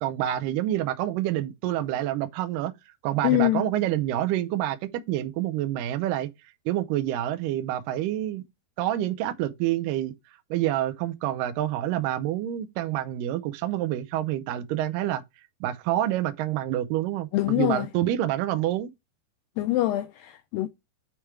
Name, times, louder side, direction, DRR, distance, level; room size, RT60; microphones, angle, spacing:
voice 1, 0.0-2.7 3.0-6.3 6.7-8.4 8.8-10.1 10.5-15.2 15.6-18.9, right 13 dB, 75° right, 2.1 m, -27 dB
voice 2, 3.2-3.7 17.3-17.9 19.6-20.7, left 16 dB, 85° left, 2.0 m, -24 dB
8.6 x 3.4 x 4.5 m
omnidirectional pair, 4.5 m